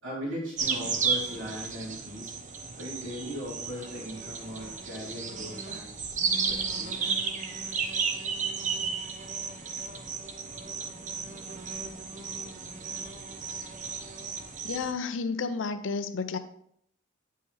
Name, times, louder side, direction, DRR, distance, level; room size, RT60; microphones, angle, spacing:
voice 1, 0.0-2.3 2.8-5.9 6.5-7.2, equal, 75° right, -6 dB, 3.0 m, -38 dB
sound 1, 0.6-14.9, right 5 dB, 40° right, 0.8 m, -33 dB
voice 2, 14.6-16.4, left 4 dB, 80° left, 10 dB, 0.5 m, -31 dB
9.2 x 5.6 x 3.3 m, 0.70 s
head